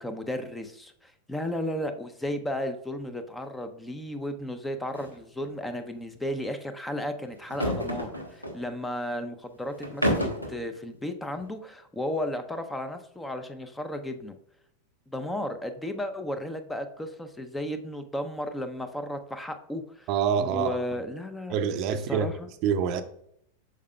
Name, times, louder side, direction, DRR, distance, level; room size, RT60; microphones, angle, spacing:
voice 1, 0.0-14.3 15.1-20.1 20.4-21.6 22.1-22.5, left 1 dB, 5° left, 0.6 m, -34 dB
sound 1, 4.9-5.2 5.4-5.5 7.4-8.6 9.8-10.6, equal, 85° left, 1.1 m, -29 dB
voice 2, 20.1-20.8 21.5-22.3 22.6-23.0, right 7 dB, 40° right, 0.6 m, -26 dB
8.3 x 6.4 x 2.3 m
figure-of-eight pair, 90°, 0 cm